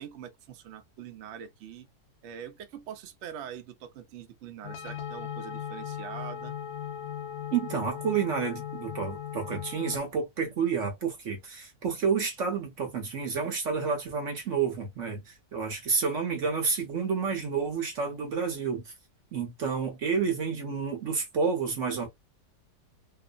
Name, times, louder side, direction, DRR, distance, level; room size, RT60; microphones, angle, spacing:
voice 1, 0.0-1.9 2.2-6.6, right 9 dB, 75° right, 0.6 m, -43 dB
sound 1, 4.6-10.0, left 8 dB, 80° left, 0.6 m, -38 dB
voice 2, 7.5-18.9 19.3-22.1, right 5 dB, 55° right, 1.0 m, -30 dB
3.0 x 2.0 x 2.4 m
omnidirectional pair, 1.9 m